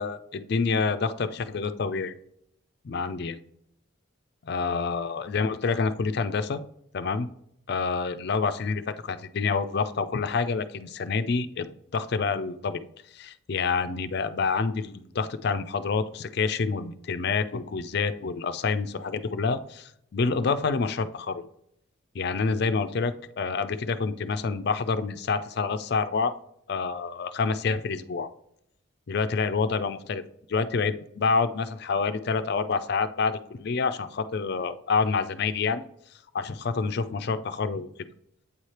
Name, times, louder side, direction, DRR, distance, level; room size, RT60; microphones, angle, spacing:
voice 1, 0.0-2.1 2.8-3.4 4.4-6.6 6.9-7.3 7.7-12.8 13.1-21.4 22.1-26.3 26.7-28.3 29.1-30.2 30.5-35.8 36.3-37.9, left 4 dB, 50° left, 11 dB, 0.4 m, -27 dB
8.5 x 3.2 x 4.3 m, 0.73 s
head